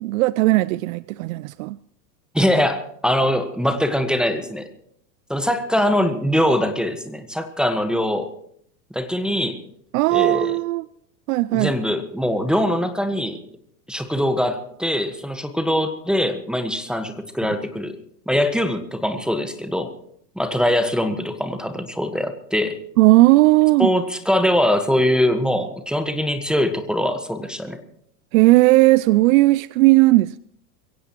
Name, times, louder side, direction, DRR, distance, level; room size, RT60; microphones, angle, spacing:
voice 1, 0.0-1.8 9.9-10.9 11.3-11.7 23.0-23.9 28.3-30.4, right 20 dB, 55° right, 0.5 m, -16 dB
voice 2, 2.3-4.7 5.3-8.3 8.9-9.6 10.1-10.5 11.5-13.4 13.9-18.0 18.3-19.9 20.3-22.8 23.8-27.8, equal, ahead, 1.4 m, -22 dB
23.0 x 16.5 x 3.1 m
hypercardioid pair, 95°, 50 cm